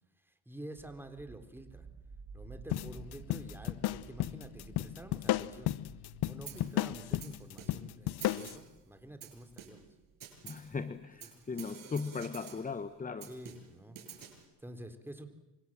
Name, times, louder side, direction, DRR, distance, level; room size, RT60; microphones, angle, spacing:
voice 1, 0.5-1.9 2.3-5.7 6.3-9.8 11.3-11.9 13.3-14.0 14.6-15.3, right 1 dB, 5° right, 7 dB, 3.8 m, -49 dB
sound 1, 0.8-11.5, right 5 dB, 25° right, 2.9 m, -54 dB
sound 2, 2.7-8.6, left 15 dB, 65° left, 1.0 m, -34 dB
Snare drum, 6.5-6.8 7.2-7.9 8.2-8.8 9.2-9.9 10.2-10.7 11.2-12.7 13.2-14.4, right 8 dB, 50° right, 7.7 m, -49 dB
voice 2, 10.4-13.3, left 4 dB, 20° left, 12 dB, 1.2 m, -38 dB
28.5 x 26.5 x 7.6 m, 1.0 s
supercardioid pair, 90°, 42 cm